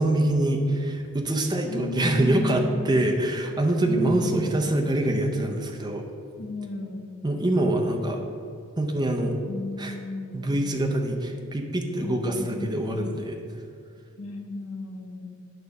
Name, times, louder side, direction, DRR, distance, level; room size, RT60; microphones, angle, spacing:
voice 1, 0.0-6.0 7.2-8.2 8.8-9.4 9.8-10.0 10.3-13.4, right 1 dB, 20° right, 3 dB, 0.6 m, -25 dB
voice 2, 1.7-3.0 3.8-4.7 6.4-7.1 9.4-10.5 12.0-12.9 14.2-15.4, left 1 dB, 75° left, 3 dB, 0.9 m, -34 dB
9.1 x 3.1 x 6.5 m, 2.4 s
head